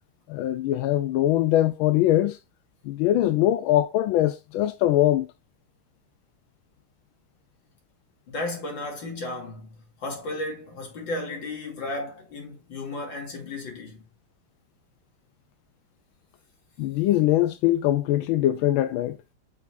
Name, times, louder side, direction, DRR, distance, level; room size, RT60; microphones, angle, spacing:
voice 1, 0.3-2.4 2.9-5.3 16.8-19.2, left 14 dB, 80° left, 1.3 m, -22 dB
voice 2, 8.3-14.1, left 2 dB, 60° left, 3.5 m, -34 dB
8.3 x 6.6 x 2.6 m
omnidirectional pair, 2.3 m